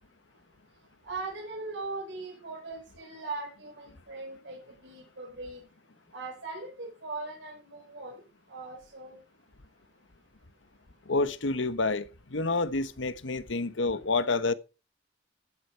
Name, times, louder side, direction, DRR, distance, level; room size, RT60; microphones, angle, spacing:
voice 1, 1.0-5.6 6.1-8.2 8.5-9.2, right 3 dB, 70° right, 4.8 m, -40 dB
voice 2, 11.1-12.0 12.3-14.5, left 3 dB, 85° left, 1.1 m, -28 dB
15.0 x 9.8 x 4.6 m
head